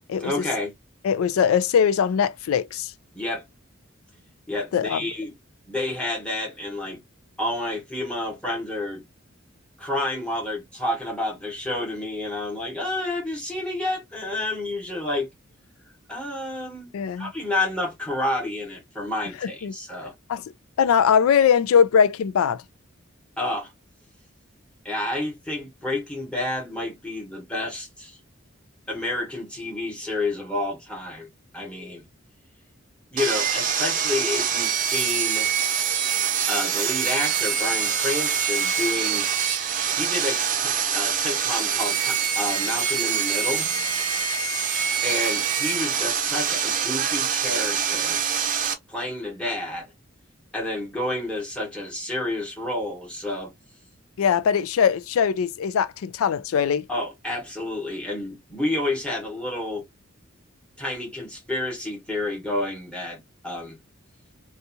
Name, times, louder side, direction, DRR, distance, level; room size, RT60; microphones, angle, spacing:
voice 1, 0.2-0.7 3.1-3.4 4.5-5.3 5.7-7.0 7.4-9.0 9.8-15.3 16.1-20.1 23.4-23.7 24.8-28.2 28.9-31.3 31.5-32.0 33.1-35.5 36.5-39.3 39.9-43.7 45.0-48.2 48.9-49.9 50.5-53.5 56.9-59.8 60.8-63.8, left 2 dB, 5° left, 1.2 m, -30 dB
voice 2, 1.0-2.9 4.7-5.0 16.9-17.3 19.6-19.7 20.3-20.4 20.8-22.6 54.2-56.9, left 7 dB, 90° left, 0.3 m, -21 dB
Sawing, 33.2-48.7, right 7 dB, 40° right, 0.6 m, -25 dB
2.7 x 2.4 x 2.7 m
head